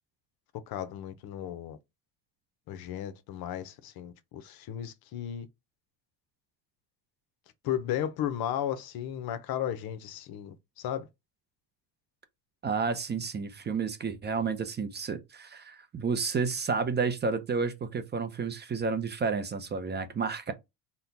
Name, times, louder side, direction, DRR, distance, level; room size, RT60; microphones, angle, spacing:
voice 1, 0.7-1.8 2.7-5.5 7.6-11.1, left 10 dB, 60° left, 0.7 m, -34 dB
voice 2, 12.6-20.5, right 5 dB, 25° right, 0.6 m, -31 dB
4.3 x 2.2 x 3.9 m
cardioid pair, 125°, 42 cm